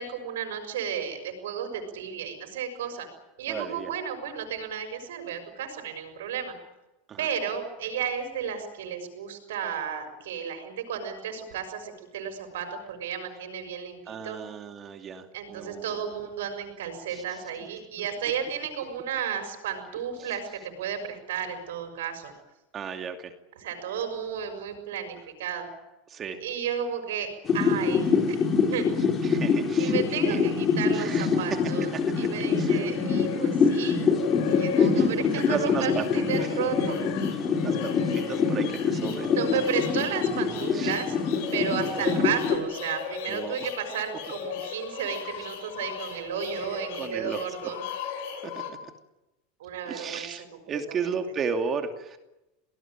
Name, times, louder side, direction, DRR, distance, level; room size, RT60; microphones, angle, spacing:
voice 1, 0.0-3.1 3.4-6.5 7.2-14.4 15.3-22.3 23.6-25.7 26.4-28.2 28.7-28.9 29.8-34.0 34.5-37.2 39.3-41.2 41.5-47.8 49.6-50.3 50.7-51.1, right 8 dB, 85° right, 6 dB, 6.4 m, -33 dB
voice 2, 3.5-3.9 7.1-7.3 14.1-15.3 15.5-16.1 17.1-17.2 18.0-18.1 20.2-20.3 22.7-23.3 26.1-26.4 29.2-30.0 30.2-30.4 30.9-31.3 31.9-32.0 32.4-32.8 34.8-35.1 35.4-36.3 37.6-39.3 40.7-40.9 43.3-43.7 47.0-47.4 48.4-48.9 49.8-52.2, right 6 dB, 30° right, 5 dB, 2.6 m, -34 dB
sound 1, 27.4-42.6, left 5 dB, 30° left, 4.9 m, -25 dB
sound 2, 31.7-48.7, left 8 dB, 70° left, 5.6 m, -37 dB
24.5 x 19.0 x 9.1 m, 0.98 s
supercardioid pair, 115°, 0 cm